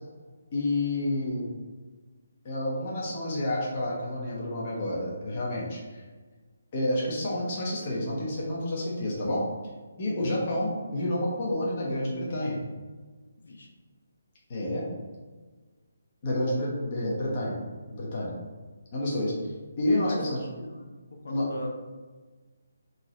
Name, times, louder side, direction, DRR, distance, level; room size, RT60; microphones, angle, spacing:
voice 1, 0.5-1.5 2.4-6.0 6.7-9.4 10.0-12.6 14.5-14.9 16.2-17.6 17.9-18.4 18.9-19.3 19.8-20.4 21.3-21.5, left 1 dB, 25° left, -5 dB, 1.0 m, -29 dB
voice 2, 10.0-10.4 13.4-13.7 20.1-20.2 20.5-21.7, left 1 dB, 75° left, 2 dB, 0.7 m, -39 dB
5.1 x 3.1 x 3.2 m, 1.4 s
hypercardioid pair, 175°, 0 cm